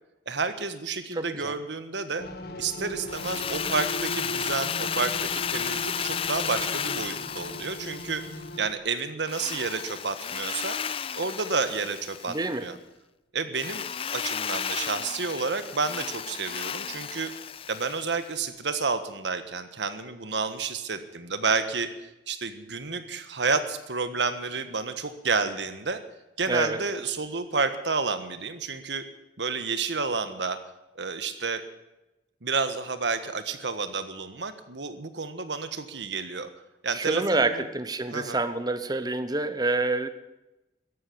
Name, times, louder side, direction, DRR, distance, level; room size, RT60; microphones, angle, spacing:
voice 1, 0.3-2.3 2.6-8.2 8.6-10.8 11.1-12.8 13.3-17.3 17.7-21.9 22.3-26.0 26.4-29.0 29.4-30.6 30.9-31.6 32.4-36.5 36.8-37.6 38.1-38.4, right 4 dB, 80° right, 10 dB, 1.4 m, -30 dB
voice 2, 1.1-1.6 12.3-12.7 26.5-26.8 36.9-40.1, right 2 dB, 20° right, 11 dB, 1.0 m, -27 dB
sound 1, 2.2-8.7, equal, 60° left, 1.4 m, -39 dB
Drill, 3.1-8.6 9.3-12.6 13.5-18.3, left 8 dB, 30° left, 0.4 m, -33 dB
14.0 x 11.0 x 8.6 m, 0.97 s
head